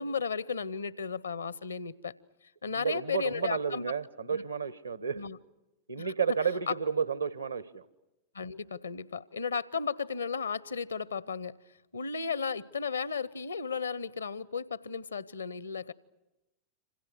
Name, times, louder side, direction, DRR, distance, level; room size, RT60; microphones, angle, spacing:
voice 1, 0.0-2.1 2.6-3.9 4.3-4.4 5.1-5.4 6.0-6.1 6.7-6.8 8.3-11.5 11.9-15.9, left 5 dB, 75° left, 0.8 m, -34 dB
voice 2, 2.7-5.2 5.9-7.8, right 6 dB, 80° right, 1.2 m, -31 dB
27.5 x 26.5 x 6.4 m
figure-of-eight pair, 90°, 0 cm